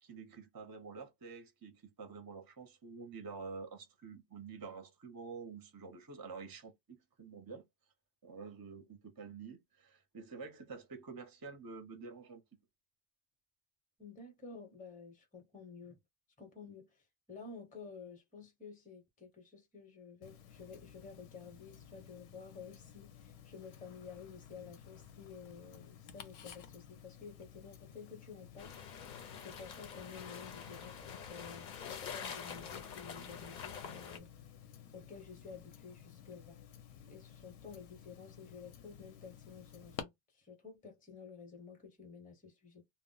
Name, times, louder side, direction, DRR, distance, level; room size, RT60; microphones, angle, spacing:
voice 1, 0.0-7.6 8.2-12.4, right 4 dB, 30° right, 0.5 m, -48 dB
voice 2, 14.0-16.0 16.4-17.0 17.3-28.7 29.4-34.3 34.9-36.6 37.1-42.9, left 5 dB, 10° left, 0.6 m, -52 dB
Tick-tock, 20.2-40.0, left 8 dB, 90° left, 0.8 m, -54 dB
sound 1, 28.6-34.2, left 7 dB, 55° left, 0.6 m, -46 dB
2.1 x 2.0 x 3.7 m
omnidirectional pair, 1.0 m